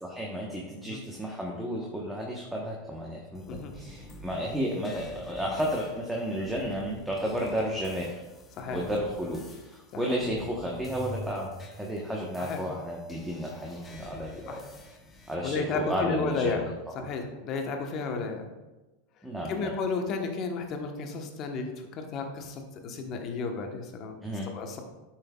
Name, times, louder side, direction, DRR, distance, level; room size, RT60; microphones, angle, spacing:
voice 1, 0.0-8.1 8.7-11.5 11.8-14.6 15.3-16.7 17.0-17.1 19.2-19.7 24.2-24.5, equal, 5° right, -2 dB, 1.1 m, -32 dB
sound 1, 3.3-15.3, left 1 dB, 20° left, 0.9 m, -47 dB
voice 2, 15.4-16.6 16.9-18.5 19.5-24.2 24.5-24.8, left 4 dB, 45° left, 4 dB, 1.1 m, -33 dB
8.8 x 5.9 x 2.3 m, 1.1 s
hypercardioid pair, 110°, 0 cm